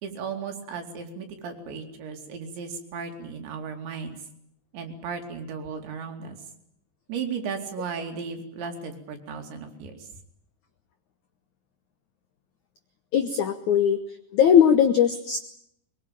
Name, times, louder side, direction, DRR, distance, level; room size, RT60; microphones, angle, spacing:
voice 1, 0.0-4.2 4.7-6.4 7.1-10.1, right 5 dB, 75° right, 4 dB, 5.0 m, -35 dB
voice 2, 13.1-14.0 14.3-15.4, left 8 dB, 85° left, 9 dB, 1.7 m, -19 dB
22.0 x 22.0 x 8.9 m, 0.72 s
omnidirectional pair, 5.2 m